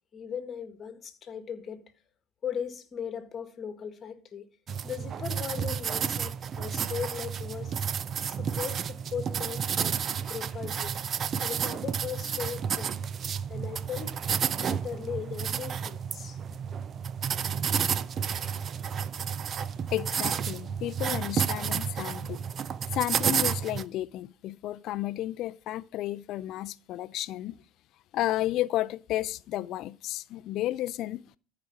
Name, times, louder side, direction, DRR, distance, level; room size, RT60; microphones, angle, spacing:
voice 1, 0.1-1.8 2.4-4.5 4.8-7.7 8.3-10.0 10.3-11.0 11.4-12.9 13.5-14.2 14.6-16.4, left 7 dB, 35° left, 1.7 m, -38 dB
sound 1, 4.7-23.8, right 7 dB, 40° right, 0.6 m, -31 dB
voice 2, 19.9-22.4 22.9-27.5 28.1-31.2, left 14 dB, 55° left, 0.4 m, -32 dB
14.0 x 5.1 x 5.9 m
supercardioid pair, 105°, 0 cm